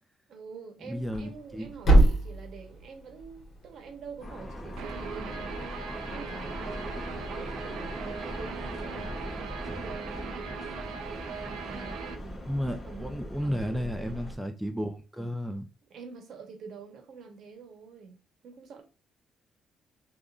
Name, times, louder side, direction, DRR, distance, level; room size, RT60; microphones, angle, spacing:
voice 1, 0.3-5.8 6.1-10.6 11.3-12.6 12.8-14.2 15.9-18.8, right 5 dB, 70° right, 0.9 m, -46 dB
voice 2, 0.8-2.0 12.5-15.7, equal, 5° right, 0.4 m, -33 dB
Thump thud, 0.9-5.0, right 1 dB, 55° left, 1.5 m, -26 dB
sound 1, 4.2-14.4, equal, 30° left, 0.8 m, -40 dB
Guitar, 4.8-12.1, right 6 dB, 85° right, 0.4 m, -39 dB
3.4 x 2.5 x 2.4 m
cardioid pair, 90°, 0 cm